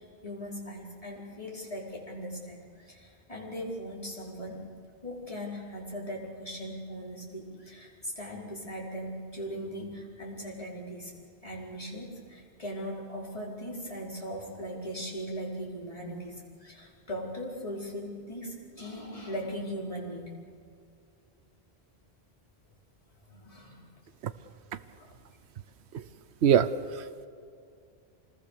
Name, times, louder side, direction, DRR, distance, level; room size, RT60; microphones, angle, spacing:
voice 1, 0.0-4.7 5.0-11.2 11.4-20.3 23.2-23.8 24.9-25.1, equal, 35° left, -4 dB, 5.1 m, -39 dB
voice 2, 26.4-27.3, right 8 dB, 90° right, 13 dB, 1.0 m, -24 dB
26.5 x 20.0 x 6.8 m, 2.3 s
omnidirectional pair, 1.1 m